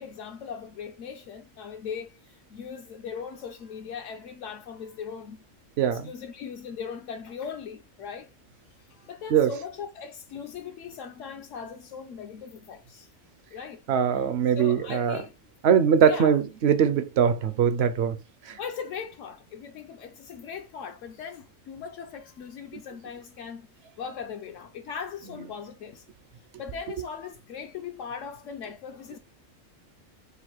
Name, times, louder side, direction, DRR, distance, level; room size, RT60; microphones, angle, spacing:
voice 1, 0.0-5.4 5.8-8.3 8.9-13.1 13.5-13.8 14.1-14.2 14.5-15.3 16.0-16.4 18.6-23.7 24.0-26.0 26.6-29.2, left 6 dB, 75° left, 0.9 m, -39 dB
voice 2, 5.8-6.1 9.3-9.5 13.9-15.2 15.6-18.2 18.5-18.6, right 8 dB, 65° right, 0.7 m, -22 dB
4.0 x 2.5 x 4.3 m
omnidirectional pair, 1.4 m